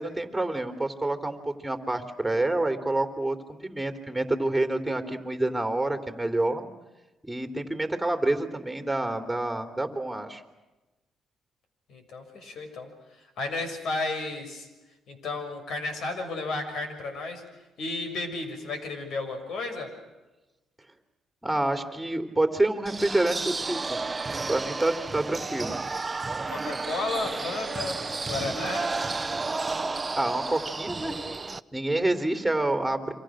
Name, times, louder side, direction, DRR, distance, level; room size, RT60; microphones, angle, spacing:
voice 1, 0.0-6.6 7.3-10.4 21.4-24.0 24.5-25.8 30.1-31.2 31.7-33.1, right 2 dB, 5° right, 6 dB, 3.4 m, -28 dB
voice 2, 11.9-12.9 13.4-14.7 15.1-17.4 17.8-19.9 26.5-28.0 28.3-28.9, left 3 dB, 70° left, 6 dB, 6.7 m, -33 dB
sound 1, 22.9-31.6, right 3 dB, 25° right, 0.8 m, -32 dB
29.0 x 25.5 x 6.4 m, 1.1 s
cardioid pair, 90°, 0 cm